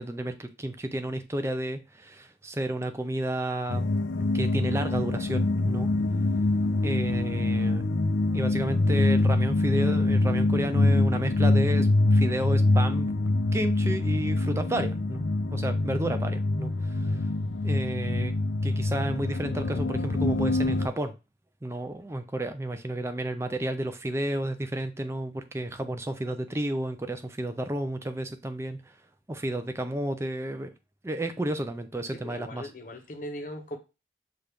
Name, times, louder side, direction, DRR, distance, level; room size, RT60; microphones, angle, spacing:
voice 1, 0.0-3.9 4.3-5.9 6.8-7.9 8.3-13.1 13.5-17.2 17.6-18.3 18.6-21.1 21.6-28.9 29.3-30.7 31.0-32.7, right 1 dB, 15° right, 8 dB, 0.4 m, -32 dB
sound 1, 3.7-20.9, left 2 dB, 85° left, 0.5 m, -25 dB
voice 2, 32.1-33.8, equal, 45° left, 4 dB, 0.7 m, -39 dB
5.8 x 2.4 x 3.4 m, 0.28 s
head